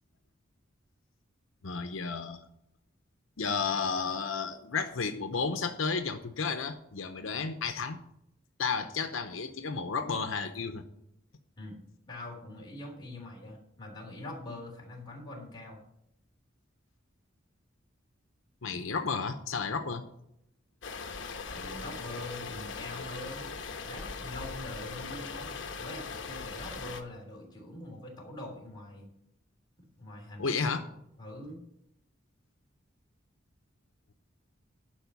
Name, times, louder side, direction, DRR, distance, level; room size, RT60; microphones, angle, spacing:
voice 1, 1.6-2.4 3.4-8.0 8.6-10.8 18.6-20.0 30.4-30.8, left 5 dB, 90° left, 8 dB, 0.8 m, -32 dB
voice 2, 12.1-15.8 19.8-19.9 21.5-23.5 23.8-29.1 30.0-30.6 30.8-31.6, left 1 dB, 20° left, -2 dB, 3.3 m, -44 dB
sound 1, 20.8-27.0, left 4 dB, 65° left, 1.2 m, -40 dB
11.5 x 4.9 x 8.2 m, 0.78 s
head